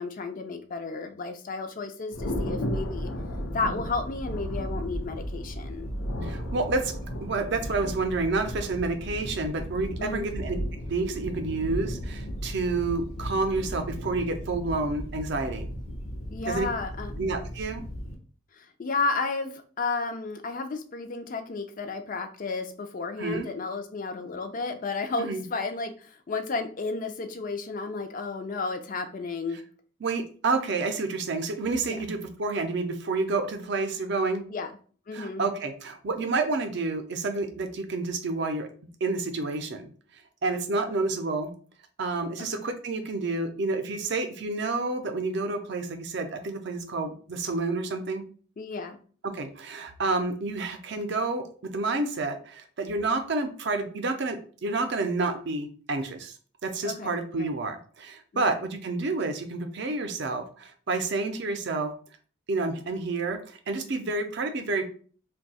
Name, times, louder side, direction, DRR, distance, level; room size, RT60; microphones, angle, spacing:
voice 1, 0.0-3.1 3.5-5.9 10.0-10.3 16.3-17.1 18.6-29.6 31.9-32.0 34.5-34.7 35.1-35.4 42.4-42.6 48.6-49.0 56.8-57.5 58.3-58.5, left 3 dB, 40° left, 8 dB, 0.4 m, -32 dB
Thunder, 2.1-18.1, equal, 90° left, 0.8 m, -35 dB
voice 2, 6.2-6.9 7.2-10.6 10.9-15.7 16.5-16.7 17.2-17.8 23.2-23.5 25.2-25.4 30.0-34.4 35.1-39.9 40.4-41.5 42.0-48.2 49.2-56.3 56.6-61.9 62.5-64.9, right 3 dB, 55° right, 6 dB, 0.5 m, -29 dB
2.6 x 2.3 x 4.0 m, 0.43 s
head